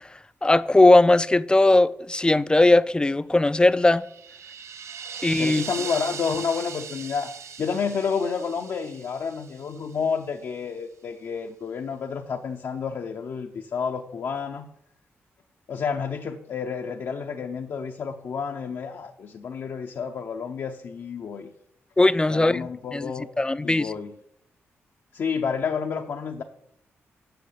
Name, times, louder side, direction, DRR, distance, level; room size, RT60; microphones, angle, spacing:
voice 1, 0.4-4.0 5.2-5.6 22.0-23.9, left 2 dB, 15° left, 0.4 m, -19 dB
sound 1, 3.8-10.0, right 7 dB, 65° right, 0.6 m, -39 dB
voice 2, 5.4-7.3 7.6-14.7 15.7-21.5 22.3-23.3 23.6-24.2 25.1-26.4, left 6 dB, 65° left, 0.7 m, -30 dB
7.9 x 6.1 x 6.7 m
cardioid pair, 60°, 5 cm